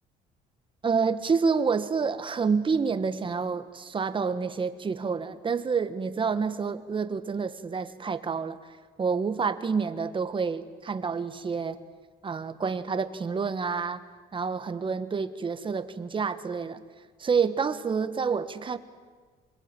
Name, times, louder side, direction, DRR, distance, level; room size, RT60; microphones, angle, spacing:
voice 1, 0.8-8.6 9.0-11.8 12.2-14.0 14.3-16.8 17.2-18.8, right 5 dB, 30° right, 11 dB, 1.5 m, -28 dB
26.5 x 21.0 x 9.1 m, 1.5 s
cardioid pair, 110°, 17 cm